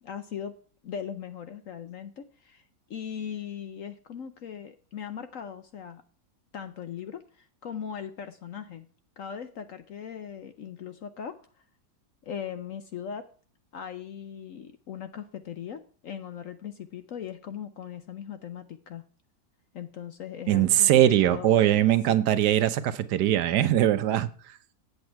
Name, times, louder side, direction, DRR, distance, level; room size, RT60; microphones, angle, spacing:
voice 1, 0.0-0.6 0.8-6.0 6.5-8.9 9.2-11.4 12.2-13.3 13.7-19.0 19.7-22.2, left 8 dB, 60° left, 10 dB, 0.9 m, -39 dB
voice 2, 20.5-24.3, right 12 dB, 70° right, 13 dB, 1.2 m, -21 dB
8.2 x 8.0 x 4.5 m, 0.43 s
omnidirectional pair, 1.9 m